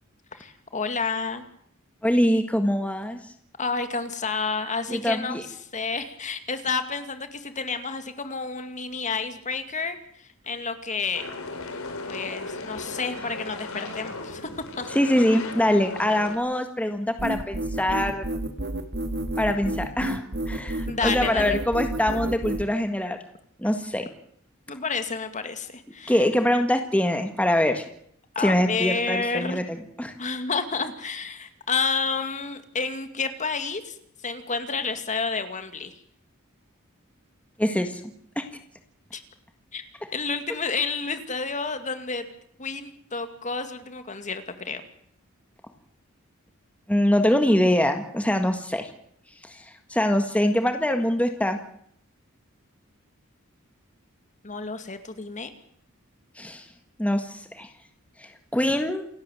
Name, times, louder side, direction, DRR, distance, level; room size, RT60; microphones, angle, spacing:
voice 1, 0.3-1.4 3.6-5.4 5.7-11.3 12.1-14.9 20.9-21.6 24.7-26.2 28.4-29.6 30.2-34.0 34.2-35.9 39.1-39.2 39.7-39.9 40.1-42.3 42.6-44.8 54.4-55.5, left 4 dB, 35° left, 9 dB, 2.3 m, -30 dB
voice 2, 2.0-3.2 4.9-5.4 14.9-18.3 19.4-23.2 23.6-24.1 26.1-27.8 28.4-30.1 37.6-38.0 38.3-38.4 46.9-48.9 49.4-51.6 56.4-56.6 57.0-57.7 58.2-59.0, left 1 dB, 5° left, 6 dB, 1.7 m, -24 dB
sound 1, 11.1-16.4, left 3 dB, 75° left, 4.2 m, -36 dB
sound 2, 17.2-22.7, right 1 dB, 50° right, 2.0 m, -30 dB
28.5 x 12.5 x 9.2 m, 0.67 s
head